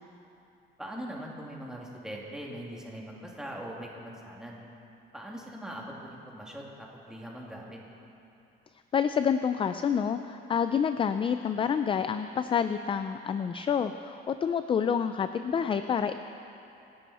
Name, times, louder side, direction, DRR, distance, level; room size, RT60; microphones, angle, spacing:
voice 1, 0.8-4.6 5.1-7.8, equal, 5° right, -3 dB, 2.5 m, -41 dB
voice 2, 8.9-16.2, left 7 dB, 25° left, 10 dB, 0.4 m, -28 dB
26.5 x 11.0 x 4.2 m, 2.8 s
cardioid pair, 135°, 20 cm